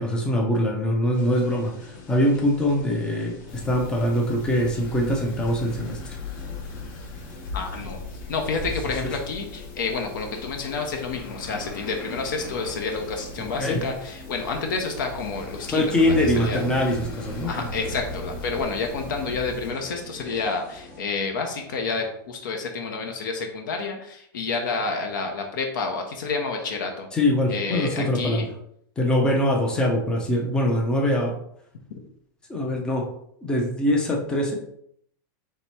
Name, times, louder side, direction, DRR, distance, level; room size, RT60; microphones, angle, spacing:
voice 1, 0.0-6.0 9.0-9.1 13.6-13.8 15.7-17.7 27.1-28.5 29.0-31.4 32.5-33.1 33.4-34.6, left 1 dB, 5° left, 1 dB, 0.5 m, -23 dB
sound 1, 1.1-21.0, left 3 dB, 40° left, 1.0 m, -44 dB
sound 2, 3.5-19.7, left 3 dB, 75° left, 1.0 m, -39 dB
voice 2, 7.5-16.6 17.5-27.1 27.5-28.4, left 4 dB, 60° left, 3 dB, 0.7 m, -29 dB
sound 3, 16.1-21.9 22.1-22.2, right 5 dB, 50° right, 0.4 m, -38 dB
3.4 x 2.9 x 4.3 m, 0.70 s
supercardioid pair, 175°, 12 cm